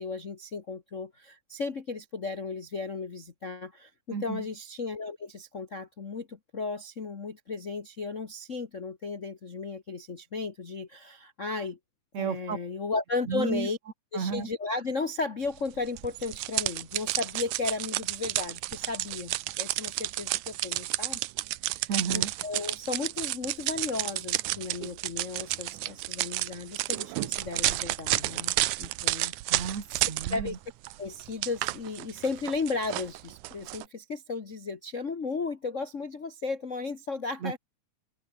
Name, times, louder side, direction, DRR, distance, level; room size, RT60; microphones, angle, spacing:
voice 1, 0.0-11.8 12.2-13.8 14.1-21.2 21.6-29.3 30.3-30.6 31.0-37.6, left 4 dB, 40° left, 1.1 m, -35 dB
voice 2, 4.1-4.5 12.1-12.6 13.3-13.7 14.1-14.5 21.9-22.3 29.5-30.6 37.4-37.6, right 6 dB, 60° right, 4.5 m, -32 dB
sound 1, 16.0-30.6 30.8-33.9, right 17 dB, 80° right, 2.2 m, -31 dB
omnidirectional pair, 3.5 m